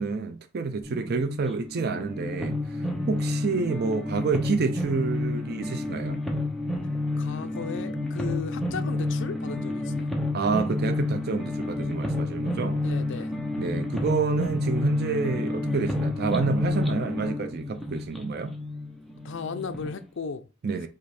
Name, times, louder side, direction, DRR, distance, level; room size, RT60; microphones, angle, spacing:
voice 1, 0.0-6.2 10.3-12.8 13.6-18.5 20.6-20.9, right 4 dB, 50° right, 0.4 m, -29 dB
sound 1, 0.8-19.9, left 2 dB, ahead, 0.6 m, -30 dB
voice 2, 7.2-10.2 12.8-13.4 19.2-20.5, left 5 dB, 60° left, 0.5 m, -36 dB
5.0 x 2.5 x 4.2 m
head